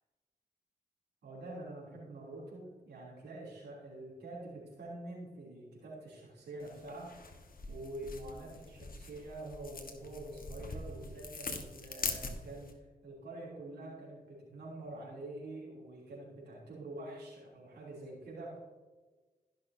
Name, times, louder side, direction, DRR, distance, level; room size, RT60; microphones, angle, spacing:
voice 1, 1.2-7.1 7.7-18.6, right 2 dB, 85° right, -5 dB, 3.1 m, -46 dB
sound 1, 6.6-12.7, left 3 dB, 60° left, 1.4 m, -43 dB
15.5 x 6.5 x 2.8 m, 1.3 s
cardioid pair, 45°, 17 cm